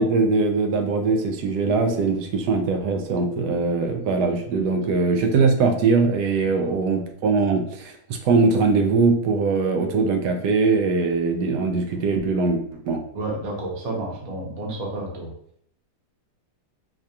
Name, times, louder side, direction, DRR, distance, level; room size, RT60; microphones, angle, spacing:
voice 1, 0.0-13.0, right 4 dB, 80° right, 5 dB, 1.1 m, -21 dB
voice 2, 13.1-15.3, right 2 dB, 60° right, -1 dB, 1.4 m, -30 dB
4.8 x 2.3 x 2.8 m, 0.66 s
omnidirectional pair, 1.8 m